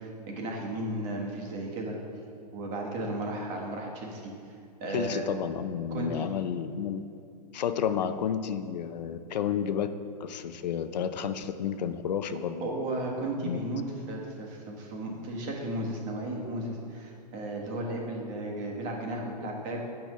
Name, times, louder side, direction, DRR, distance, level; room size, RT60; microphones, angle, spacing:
voice 1, 0.0-2.0 2.5-4.3 4.8-5.2 5.9-6.3 12.6-19.8, right 1 dB, 40° right, 0 dB, 1.3 m, -34 dB
voice 2, 4.9-7.0 7.5-9.9 10.2-12.8 13.4-13.6, left 8 dB, 80° left, 10 dB, 0.4 m, -31 dB
8.4 x 5.6 x 3.1 m, 2.4 s
hypercardioid pair, 130°, 21 cm